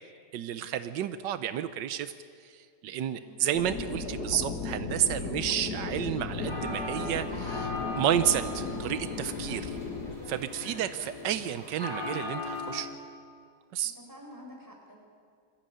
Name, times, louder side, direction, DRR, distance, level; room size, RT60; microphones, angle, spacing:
voice 1, 0.3-2.1 2.4-9.8 10.3-12.9 13.7-13.9, right 10 dB, 85° right, 12 dB, 1.4 m, -31 dB
voice 2, 3.0-3.3 10.1-10.3 13.8-15.0, equal, 10° right, 0 dB, 4.5 m, -49 dB
sound 1, 3.5-10.2, left 3 dB, 65° left, 2.7 m, -36 dB
sound 2, 6.3-12.8, left 3 dB, 10° left, 5.9 m, -38 dB
22.0 x 15.0 x 9.1 m, 2.2 s
omnidirectional pair, 1.9 m